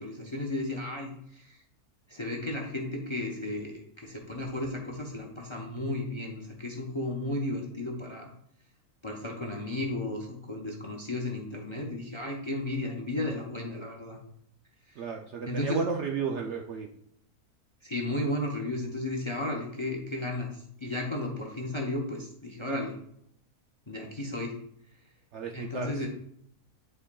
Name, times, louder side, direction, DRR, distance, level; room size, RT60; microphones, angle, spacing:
voice 1, 0.0-1.6 2.1-8.3 9.0-14.2 14.9-15.0 15.5-15.8 17.8-23.0 23.9-24.6 25.5-26.1, left 1 dB, 25° left, 1 dB, 0.6 m, -34 dB
voice 2, 15.0-16.9 25.3-25.9, right 5 dB, 65° right, 2 dB, 0.7 m, -33 dB
9.9 x 4.5 x 2.3 m, 0.71 s
omnidirectional pair, 1.6 m